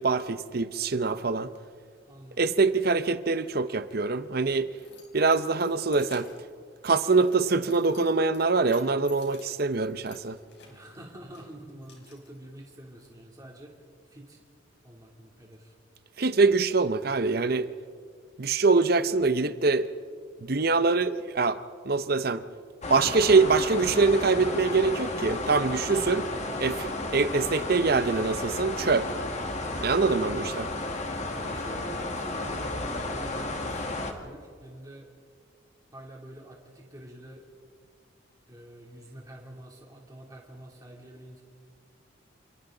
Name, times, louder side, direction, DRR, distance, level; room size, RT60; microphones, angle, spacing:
voice 1, 0.0-1.5 2.4-4.7 5.1-6.3 6.8-10.4 16.2-17.7 18.4-19.9 20.4-21.6 21.9-22.4 22.9-26.3 26.6-29.1 29.8-30.7, right 4 dB, 50° right, 0.7 m, -24 dB
voice 2, 2.1-2.5 10.7-13.7 14.0-14.4 14.8-15.7 31.4-35.1 35.9-37.4 38.5-41.4, right 1 dB, 20° right, 3.0 m, -47 dB
Keys jangling, 4.5-13.1, left 5 dB, 60° left, 4.5 m, -55 dB
sound 1, 22.8-34.1, left 2 dB, 35° left, 1.9 m, -33 dB
28.5 x 27.5 x 3.9 m
head